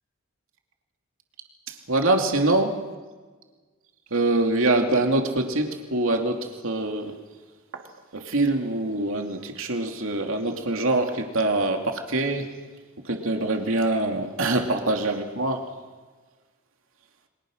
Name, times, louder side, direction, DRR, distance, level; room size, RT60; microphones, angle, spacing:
voice 1, 1.7-2.8 4.1-7.2 7.7-7.8 8.1-12.5 13.0-15.6, right 2 dB, 70° right, 3 dB, 2.7 m, -24 dB
29.0 x 25.0 x 6.5 m, 1.4 s
head